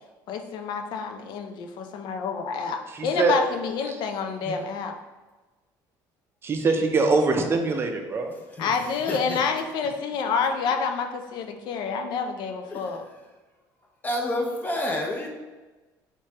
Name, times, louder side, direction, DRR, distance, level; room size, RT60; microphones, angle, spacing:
voice 1, 0.3-4.9 8.6-13.0, left 5 dB, 65° left, 5 dB, 0.4 m, -28 dB
voice 2, 2.9-3.3 3.9-4.0 4.5-4.6 6.4-8.3, right 3 dB, 30° right, 4 dB, 0.5 m, -23 dB
voice 3, 9.1-9.4 12.7-12.9 14.0-15.3, left 1 dB, 20° left, 0 dB, 0.7 m, -29 dB
3.2 x 3.2 x 2.8 m, 1.2 s
cardioid pair, 115°, 8 cm